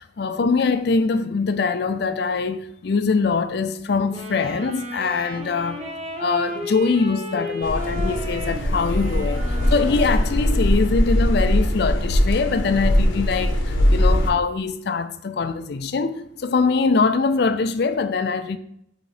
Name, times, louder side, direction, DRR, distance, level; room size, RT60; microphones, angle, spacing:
voice 1, 0.0-5.8 6.2-18.6, left 4 dB, 55° left, 0.4 m, -23 dB
Wind instrument woodwind instrument, 4.1-10.9, left 1 dB, 35° right, 0.9 m, -33 dB
sound 1, 7.6-14.3, equal, 80° left, 0.9 m, -21 dB
5.1 x 3.9 x 4.9 m
head